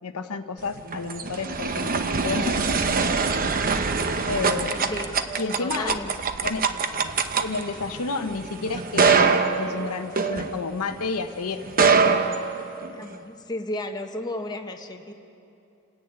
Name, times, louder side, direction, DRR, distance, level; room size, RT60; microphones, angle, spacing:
voice 1, 0.0-2.7 4.3-4.8 5.4-6.0 6.4-6.6 7.4-11.6, left 4 dB, 75° left, 7 dB, 0.9 m, -30 dB
sound 1, 0.7-11.0 11.6-13.1, right 5 dB, 40° right, 0.8 m, -24 dB
voice 2, 5.6-6.3 13.0-15.1, left 1 dB, 20° left, 3 dB, 1.0 m, -33 dB
28.5 x 10.5 x 8.8 m, 2.7 s
head